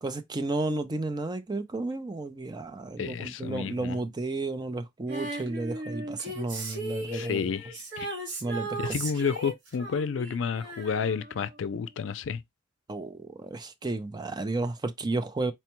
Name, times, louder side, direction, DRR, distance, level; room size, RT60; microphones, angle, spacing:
voice 1, 0.0-7.4 8.4-9.0 12.9-15.5, right 2 dB, 20° right, 0.4 m, -32 dB
voice 2, 3.0-4.0 7.1-8.1 8.8-12.4, left 6 dB, 85° left, 0.4 m, -31 dB
Female singing, 5.1-11.7 12.0-12.1, right 1 dB, 65° right, 1.2 m, -37 dB
4.3 x 2.2 x 2.9 m
head